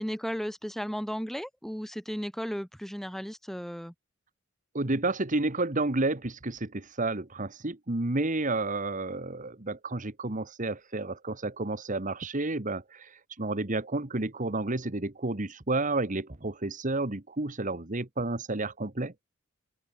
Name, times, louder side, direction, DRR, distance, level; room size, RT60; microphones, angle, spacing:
voice 1, 0.0-3.9, equal, ahead, 1.2 m, -35 dB
voice 2, 4.7-19.1, right 2 dB, 40° right, 1.6 m, -31 dB
open air
head